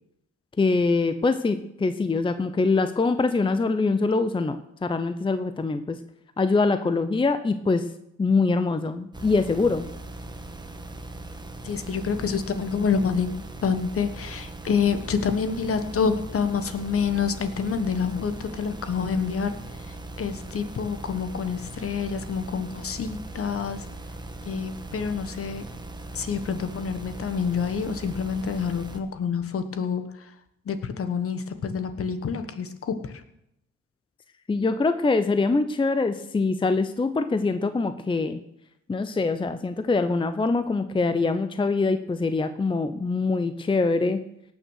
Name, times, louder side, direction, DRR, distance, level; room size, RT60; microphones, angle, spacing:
voice 1, 0.6-6.0 6.4-7.9 8.2-9.9 34.5-38.4 38.9-44.2, left 3 dB, 15° left, 10 dB, 0.7 m, -24 dB
sound 1, 9.1-29.0, right 2 dB, 15° right, 1.4 m, -39 dB
voice 2, 11.6-13.3 13.6-23.9 24.4-25.6 26.1-30.3 30.6-33.2, left 6 dB, 50° left, 9 dB, 1.3 m, -27 dB
18.0 x 6.4 x 6.4 m, 0.81 s
cardioid pair, 90°, 30 cm